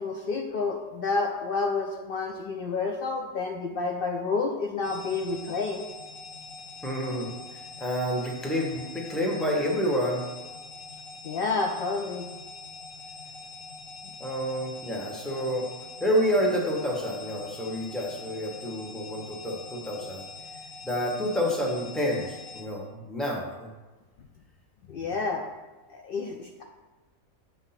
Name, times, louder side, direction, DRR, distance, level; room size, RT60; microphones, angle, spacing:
voice 1, 0.0-5.8 11.2-12.3 24.9-25.5 25.9-26.6, left 4 dB, 85° left, 2 dB, 0.5 m, -29 dB
sound 1, 4.8-22.6, left 3 dB, 70° left, 1.6 m, -44 dB
voice 2, 6.8-10.2 14.2-15.7 16.0-20.2 20.8-23.7, equal, ahead, -2 dB, 0.7 m, -29 dB
7.1 x 2.7 x 5.7 m, 1.2 s
omnidirectional pair, 1.5 m